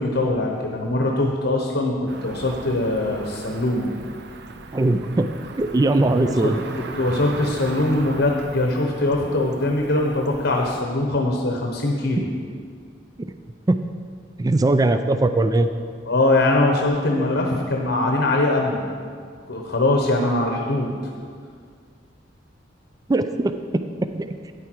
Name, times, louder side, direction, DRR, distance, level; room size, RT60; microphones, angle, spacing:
voice 1, 0.0-3.9 6.2-6.5 7.0-12.3 16.0-18.9 19.5-20.9, left 2 dB, 75° left, 0 dB, 1.0 m, -22 dB
Cricket / Motor vehicle (road), 2.1-10.8, right 3 dB, 65° right, 0.6 m, -38 dB
voice 2, 4.7-5.3 5.6-6.6 13.7-13.8 14.4-15.7 17.2-17.3 23.1-23.5 24.1-24.3, right 2 dB, 20° right, 9 dB, 0.3 m, -20 dB
9.7 x 8.4 x 4.6 m, 2.1 s
head